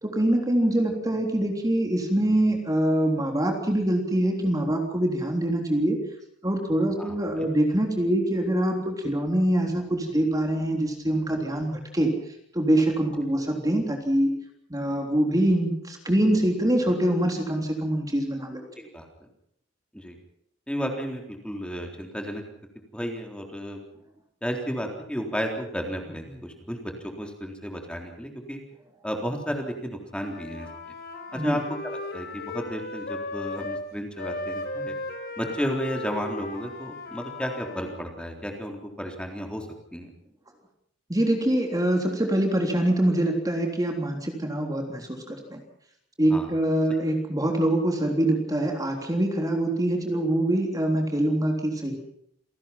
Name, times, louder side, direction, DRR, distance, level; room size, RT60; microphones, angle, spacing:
voice 1, 0.0-6.0 6.4-12.1 12.5-14.3 14.7-18.6 31.3-31.6 41.1-45.6 46.2-52.0, right 1 dB, 20° right, 3 dB, 3.5 m, -24 dB
voice 2, 18.8-19.3 19.9-20.2 20.7-22.4 22.9-23.8 24.4-28.6 29.0-30.7 31.3-34.9 35.4-39.7 39.9-40.1 46.3-46.5, equal, 5° left, 3 dB, 3.7 m, -33 dB
Wind instrument woodwind instrument, 30.1-33.9 34.2-38.0, left 2 dB, 55° left, 4.5 m, -36 dB
28.5 x 18.5 x 5.9 m, 0.71 s
head